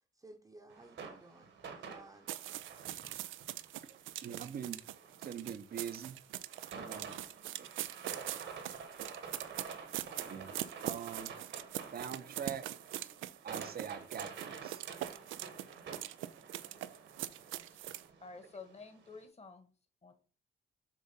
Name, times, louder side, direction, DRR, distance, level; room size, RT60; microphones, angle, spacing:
voice 1, 0.1-2.3, right 2 dB, 15° right, 1 dB, 0.9 m, -57 dB
sound 1, 0.7-19.2, right 5 dB, 70° right, 1.5 m, -49 dB
sound 2, 2.3-18.1, right 14 dB, 85° right, 0.4 m, -43 dB
voice 2, 3.9-4.8 5.2-6.2 6.8-7.2 7.6-7.7 10.3-10.6 10.8-11.3 11.9-12.6 13.4-14.8 16.8-17.0, right 8 dB, 50° right, 11 dB, 0.8 m, -43 dB
voice 3, 18.2-19.7 20.0-20.1, left 4 dB, 30° left, 7 dB, 1.5 m, -51 dB
7.4 x 2.5 x 5.6 m, 0.38 s
cardioid pair, 90°, 20 cm